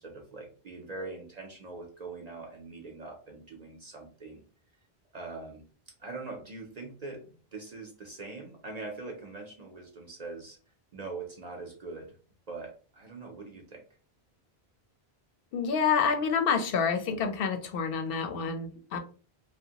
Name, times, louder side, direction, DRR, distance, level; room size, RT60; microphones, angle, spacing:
voice 1, 0.0-4.4 5.1-5.6 6.0-10.6 10.9-12.1 12.5-13.8, right 3 dB, 50° right, 1 dB, 0.6 m, -42 dB
voice 2, 15.5-19.0, left 6 dB, 65° left, 6 dB, 0.7 m, -28 dB
2.8 x 2.1 x 2.7 m, 0.38 s
omnidirectional pair, 1.1 m